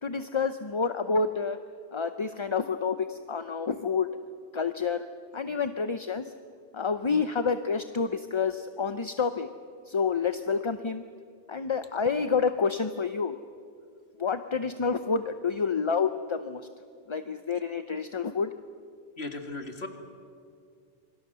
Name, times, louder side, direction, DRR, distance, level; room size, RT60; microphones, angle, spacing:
voice 1, 0.0-1.6 1.9-4.1 4.5-5.1 5.3-6.3 6.7-9.5 9.9-11.0 11.5-13.4 14.2-16.7 17.1-18.5, left 5 dB, 35° left, 9 dB, 0.6 m, -28 dB
voice 2, 19.2-19.9, left 2 dB, 80° left, 4 dB, 2.6 m, -36 dB
28.0 x 23.5 x 6.9 m, 2.3 s
omnidirectional pair, 1.1 m